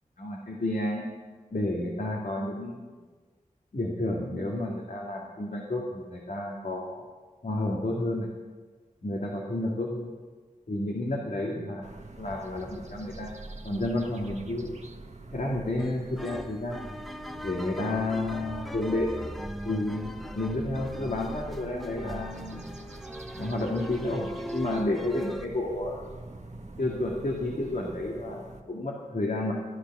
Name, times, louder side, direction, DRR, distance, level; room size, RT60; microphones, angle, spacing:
voice 1, 0.2-1.1 1.5-2.9 3.7-7.0 7.4-8.3 9.0-10.1 10.7-11.8 12.2-13.3 13.6-14.8 15.3-16.8 17.4-19.1 19.6-22.6 23.3-26.0 26.8-29.5, left 1 dB, 70° left, -3 dB, 2.2 m, -31 dB
sound 1, 11.8-28.6, right 2 dB, 55° right, 1.3 m, -45 dB
sound 2, 15.8-25.5, equal, ahead, 0.8 m, -40 dB
13.5 x 11.5 x 6.1 m, 1.4 s
wide cardioid pair, 55°, 14 cm